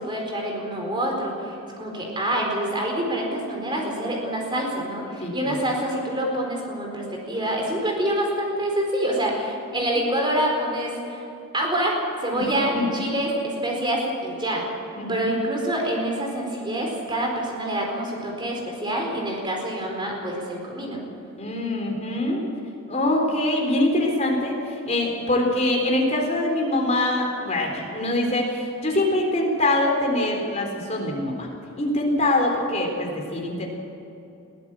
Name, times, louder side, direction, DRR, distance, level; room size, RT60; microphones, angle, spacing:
voice 1, 0.0-11.2 11.5-12.0 12.2-14.6 15.1-21.0, right 1 dB, 20° right, 0 dB, 4.4 m, -26 dB
voice 2, 5.2-5.6 9.7-10.0 12.3-12.8 15.0-15.3 21.4-22.5 22.9-31.5 31.8-33.7, left 1 dB, 30° left, 0 dB, 3.9 m, -24 dB
22.0 x 15.5 x 7.7 m, 2.8 s
head